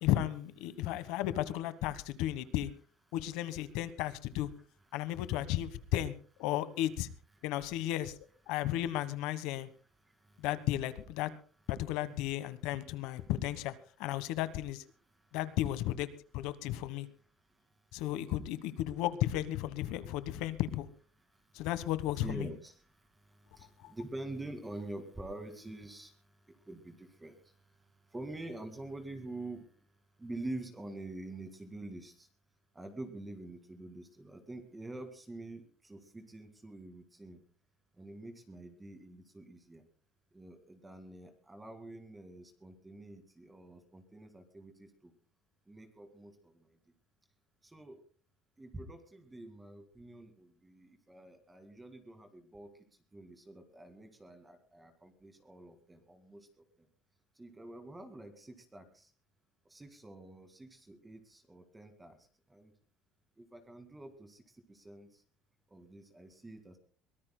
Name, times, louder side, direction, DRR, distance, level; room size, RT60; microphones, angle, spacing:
voice 1, 0.0-2.7 3.1-4.5 4.9-6.1 6.4-7.1 7.4-8.1 8.5-9.7 10.4-11.3 11.7-13.7 14.0-14.8 15.3-16.1 16.3-17.1 17.9-20.9 21.5-22.5, left 13 dB, 75° left, 14 dB, 1.2 m, -34 dB
voice 2, 0.7-1.2 4.6-5.2 5.9-6.0 7.4-7.5 7.7-7.9 10.0-10.5 13.2-13.3 15.0-15.4 17.5-18.0 21.1-21.7 22.2-29.7 30.2-32.3 32.7-37.4 37.9-39.8 40.3-45.1 45.7-46.8 47.6-48.0 48.6-52.7 53.1-56.9 57.4-59.1 59.7-62.2 62.5-62.7 63.4-65.2 65.7-66.8, right 2 dB, 10° right, 7 dB, 2.0 m, -47 dB
23.0 x 18.5 x 2.2 m, 0.40 s
cardioid pair, 150°, 0 cm